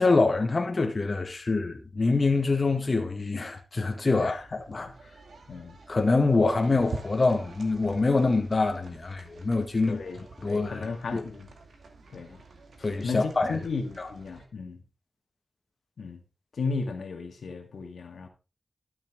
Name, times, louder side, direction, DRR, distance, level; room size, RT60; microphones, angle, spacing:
voice 1, 0.0-4.9 5.9-10.0 10.4-10.9 11.1-11.2 12.8-13.6 14.0-14.1, left 3 dB, 40° left, 1.6 m, -25 dB
sound 1, 4.4-14.5, right 3 dB, 85° right, 2.2 m, -47 dB
voice 2, 9.9-11.5 12.1-12.4 12.8-14.8 16.0-16.2 16.5-18.3, left 4 dB, 80° left, 1.9 m, -35 dB
12.5 x 7.4 x 3.7 m
wide cardioid pair, 80°, 0 cm